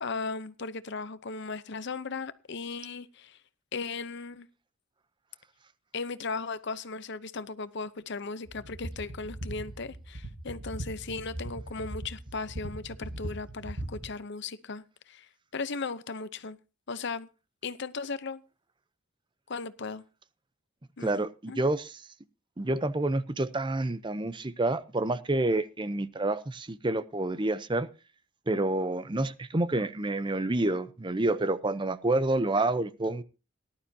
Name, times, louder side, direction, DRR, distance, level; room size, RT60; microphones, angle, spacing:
voice 1, 0.0-3.4 3.7-4.5 5.9-16.6 16.9-17.3 17.6-18.4 19.5-20.0 21.0-21.6, left 4 dB, 55° left, 0.8 m, -37 dB
sound 1, 8.5-14.1, right 1 dB, 85° right, 6.2 m, -39 dB
voice 2, 21.0-22.0 22.6-27.9 28.5-33.2, right 2 dB, 20° right, 0.6 m, -28 dB
18.5 x 11.5 x 2.8 m
head